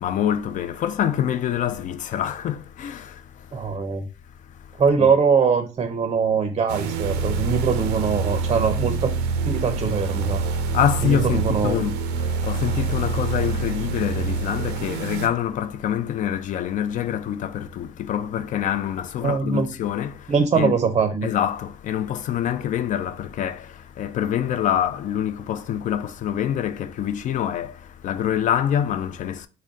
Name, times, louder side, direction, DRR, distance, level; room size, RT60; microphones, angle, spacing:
voice 1, 0.0-3.2 5.0-5.1 10.7-20.3 20.5-20.7 21.2-29.5, left 10 dB, 50° left, 0.4 m, -26 dB
voice 2, 3.5-4.1 4.8-9.1 9.4-10.4 11.0-11.9 19.2-19.7 20.3-21.3, right 5 dB, 30° right, 0.5 m, -22 dB
sound 1, 6.7-15.3, right 4 dB, 90° right, 0.5 m, -26 dB
3.8 x 2.2 x 3.4 m
cardioid pair, 110°, 17 cm